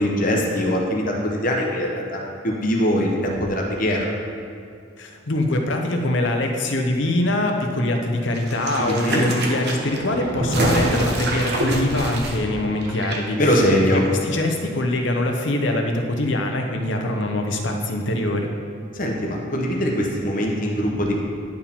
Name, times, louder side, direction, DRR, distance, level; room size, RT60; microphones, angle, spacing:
voice 1, 0.0-4.1 8.8-9.3 13.4-14.0 18.9-21.1, equal, 40° left, -1 dB, 1.0 m, -22 dB
voice 2, 5.0-13.6 14.2-18.5, left 1 dB, 65° left, 3 dB, 0.7 m, -23 dB
sound 1, 8.3-13.2 13.5-13.6, right 1 dB, 55° right, 0.9 m, -26 dB
10.5 x 4.7 x 3.6 m, 2.3 s
head